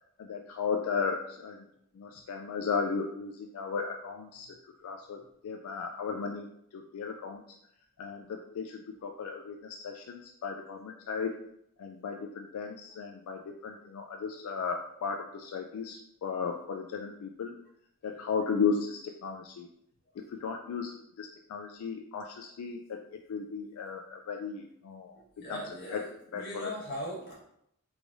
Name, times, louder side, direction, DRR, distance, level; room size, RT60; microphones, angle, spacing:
voice 1, 0.2-1.7 2.0-4.5 4.8-6.5 6.7-7.4 8.0-11.4 11.8-17.5 18.0-19.7 20.3-23.0 23.3-25.2 25.5-25.6 25.9-26.0 26.3-26.7, left 5 dB, 80° left, 3 dB, 0.3 m, -35 dB
voice 2, 25.4-27.3, equal, 45° left, -5 dB, 1.3 m, -39 dB
3.5 x 3.2 x 2.6 m, 0.74 s
head